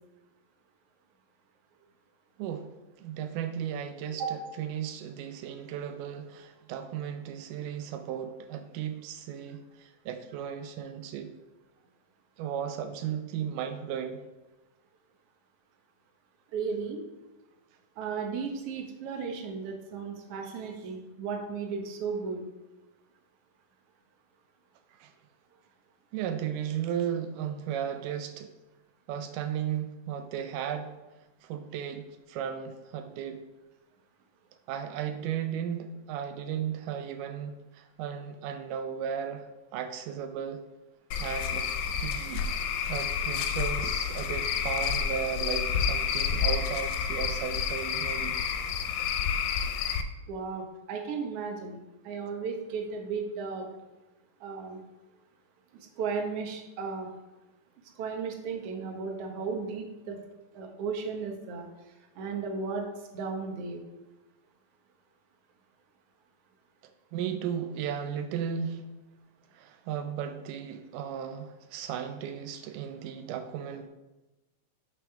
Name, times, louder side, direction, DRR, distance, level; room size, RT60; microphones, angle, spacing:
voice 1, 2.4-2.7 3.0-11.3 12.4-14.2 25.0-25.1 26.1-28.5 29.1-30.9 31.4-33.4 34.7-39.5 39.7-40.6 41.2-41.7 42.0-42.4 42.9-48.4 67.1-68.8 69.5-73.9, right 8 dB, 85° right, 7 dB, 2.2 m, -35 dB
voice 2, 16.5-17.0 18.0-22.4 50.3-51.8 52.1-53.7 54.4-54.8 56.0-57.1 58.0-60.2 60.5-61.7 62.2-62.9 63.1-63.8, right 5 dB, 60° right, 2 dB, 1.8 m, -35 dB
Cricket / Frog, 41.1-50.0, left 7 dB, 80° left, 1.8 m, -29 dB
11.5 x 4.8 x 3.4 m, 1.1 s
omnidirectional pair, 3.6 m